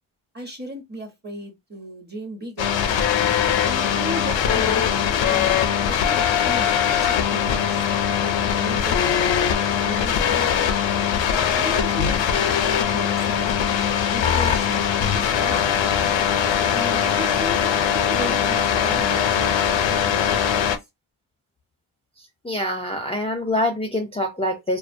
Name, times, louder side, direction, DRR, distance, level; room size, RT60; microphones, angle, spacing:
voice 1, 0.3-2.7 3.6-5.5 5.9-7.8 8.2-9.0 9.5-10.6 11.6-12.2 12.6-15.7 16.7-20.7, right 1 dB, 20° right, 0.8 m, -36 dB
sound 1, 2.6-20.8, left 8 dB, 70° left, 0.5 m, -21 dB
voice 2, 22.4-24.8, left 1 dB, 15° left, 0.5 m, -25 dB
2.2 x 2.2 x 2.5 m
cardioid pair, 75°, 47 cm